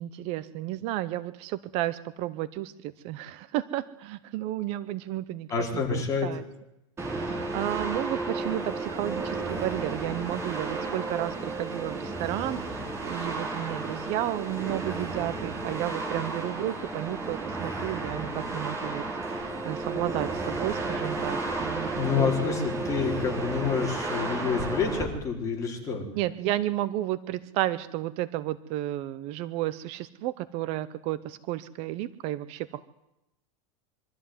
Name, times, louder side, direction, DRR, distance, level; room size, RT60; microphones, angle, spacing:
voice 1, 0.0-6.4 7.1-21.9 22.2-22.3 26.2-32.9, right 14 dB, 40° right, 14 dB, 0.8 m, -32 dB
voice 2, 5.5-6.3 21.9-26.0, left 5 dB, 20° left, 1 dB, 4.3 m, -28 dB
sound 1, 7.0-25.0, right 3 dB, 15° right, 3.9 m, -33 dB
23.5 x 13.5 x 9.5 m, 0.89 s
supercardioid pair, 165°, 16 cm